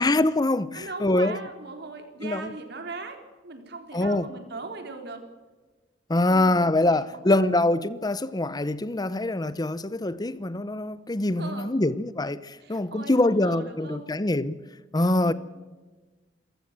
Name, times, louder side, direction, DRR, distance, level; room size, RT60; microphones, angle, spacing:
voice 1, 0.0-1.4 2.2-2.5 3.9-4.3 6.1-14.5 14.9-15.3, left 2 dB, 20° left, 0.7 m, -24 dB
voice 2, 0.7-3.2 3.4-5.2 6.3-6.5 6.9-7.0 7.3-7.5 11.4-11.7 12.6-14.1 15.2-15.3, right 3 dB, 65° right, 3.9 m, -39 dB
28.0 x 15.0 x 7.6 m
head